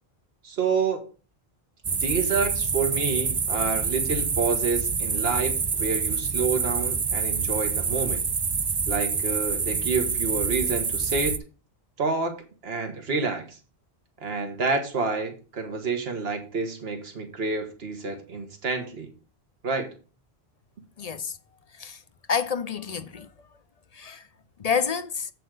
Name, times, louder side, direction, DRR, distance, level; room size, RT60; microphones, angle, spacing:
voice 1, 0.4-1.0 1.9-8.2 8.9-11.4 12.0-12.3 12.6-13.6 14.2-19.1 19.6-19.9, right 4 dB, 70° right, 1.7 m, -28 dB
sound 1, 1.8-11.4, right 5 dB, 45° right, 0.3 m, -26 dB
voice 2, 21.0-21.4 21.8-22.0 22.3-23.3 23.9-24.2 24.6-25.3, left 6 dB, 45° left, 0.5 m, -28 dB
7.8 x 7.6 x 3.8 m
omnidirectional pair, 1.1 m